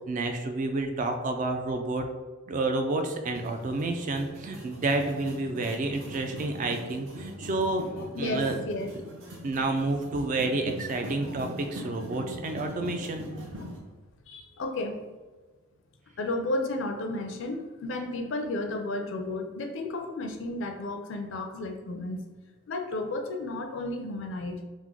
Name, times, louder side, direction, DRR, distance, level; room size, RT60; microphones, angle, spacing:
voice 1, 0.1-2.0 2.5-8.6 9.4-13.3, right 2 dB, 40° right, 5 dB, 0.3 m, -29 dB
sound 1, 3.3-13.8, equal, 65° right, 0.7 m, -42 dB
voice 2, 8.1-8.9 11.3-11.4 13.6-13.7 14.3-15.0 16.2-22.2 22.7-24.6, left 2 dB, 60° left, 4 dB, 0.4 m, -33 dB
3.0 x 2.1 x 3.6 m, 1.3 s
head